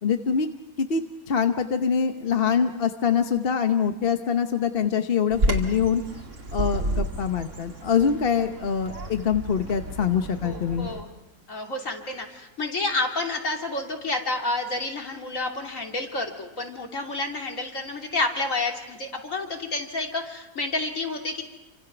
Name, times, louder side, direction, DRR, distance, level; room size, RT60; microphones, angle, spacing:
voice 1, 0.0-0.5 0.8-1.0 1.3-6.0 6.5-10.9, left 7 dB, 45° left, 7 dB, 1.1 m, -24 dB
Bird vocalization bird call bird song, 5.3-11.0, right 1 dB, 55° right, 2.8 m, -31 dB
voice 2, 10.4-11.1 11.5-21.4, left 2 dB, 60° left, 2 dB, 3.3 m, -29 dB
28.5 x 25.0 x 6.0 m, 0.92 s
omnidirectional pair, 1.5 m